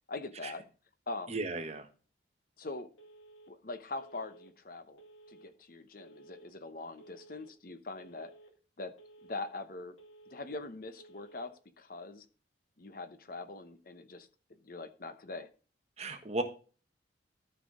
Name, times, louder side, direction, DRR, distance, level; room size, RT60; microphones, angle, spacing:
voice 1, 0.1-0.6 1.1-1.4 2.6-2.9 3.5-5.0 5.3-8.3 8.8-8.9 9.2-10.0 10.3-12.3 12.8-14.3 14.6-15.5, left 3 dB, 45° left, 11 dB, 0.8 m, -42 dB
voice 2, 1.3-1.9 16.0-16.4, right 2 dB, 35° right, 6 dB, 1.4 m, -35 dB
Telephone, 3.0-3.5 4.0-4.5 5.0-5.5 6.0-6.5 7.0-7.5 8.0-8.5 9.0-9.5 10.0-10.5 11.0-11.5, right 2 dB, 90° left, 2.2 m, -56 dB
13.0 x 5.9 x 3.7 m, 0.37 s
head